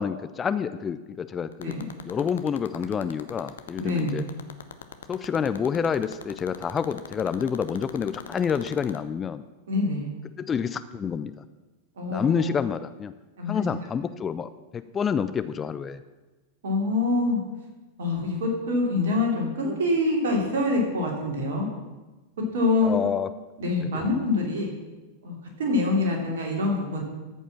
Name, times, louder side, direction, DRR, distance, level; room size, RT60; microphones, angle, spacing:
voice 1, 0.0-1.7 2.1-4.2 5.1-9.4 10.4-11.3 12.1-13.1 13.5-16.0 22.8-23.3 23.8-24.1, left 7 dB, 20° left, 13 dB, 0.4 m, -28 dB
sound 1, 1.5-9.0, left 8 dB, 65° left, 0.8 m, -38 dB
voice 2, 3.8-4.2 9.7-10.1 12.0-12.6 13.4-13.6 16.6-17.4 18.0-21.6 22.5-23.0 23.6-24.7 25.2-27.0, left 2 dB, 60° right, 0 dB, 2.8 m, -25 dB
13.5 x 5.5 x 7.3 m, 1.2 s
figure-of-eight pair, 90°, 0 cm